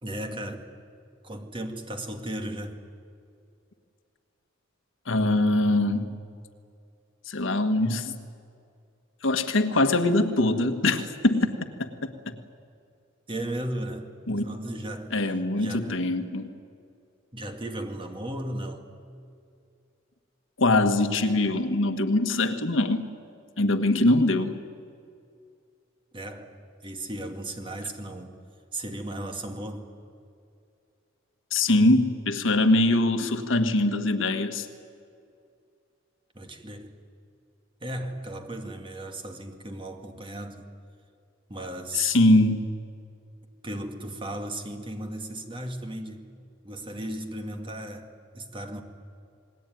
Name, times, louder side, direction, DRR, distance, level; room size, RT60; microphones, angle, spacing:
voice 1, 0.0-0.7 1.2-2.8 13.3-15.2 15.6-16.0 17.3-18.9 26.1-28.4 28.7-29.9 36.3-37.0 37.8-40.7 41.5-42.2 43.6-46.3 46.6-48.8, right 1 dB, 25° right, 5 dB, 2.2 m, -36 dB
voice 2, 5.1-6.1 7.3-8.1 9.2-11.5 11.8-11.9 14.3-14.4 15.1-16.5 20.6-23.1 23.6-24.6 31.5-34.7 41.9-42.6, left 2 dB, 70° left, 7 dB, 1.6 m, -22 dB
28.5 x 20.0 x 9.4 m, 2.4 s
head